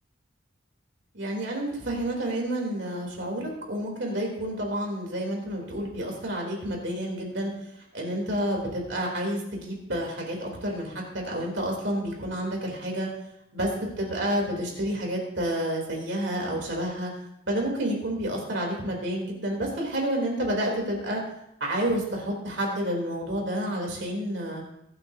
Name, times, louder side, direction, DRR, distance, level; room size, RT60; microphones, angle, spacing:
voice 1, 1.1-7.5 7.9-13.1 13.5-17.1 17.5-21.2 21.6-24.6, right 1 dB, 60° right, -1 dB, 3.2 m, -29 dB
22.5 x 8.8 x 2.7 m, 0.81 s
head